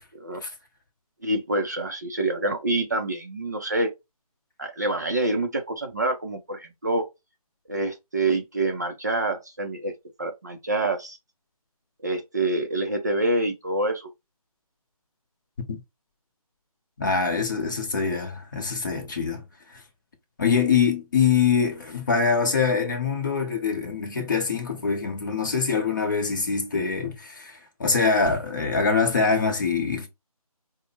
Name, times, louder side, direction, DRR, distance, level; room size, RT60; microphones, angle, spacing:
voice 1, 1.2-3.9 4.6-7.0 7.7-9.9 10.2-11.2 12.0-14.1, right 2 dB, 30° right, 0.5 m, -26 dB
voice 2, 17.0-19.4 20.4-30.1, left 5 dB, 30° left, 1.0 m, -24 dB
5.0 x 2.1 x 4.2 m
figure-of-eight pair, 165°, 19 cm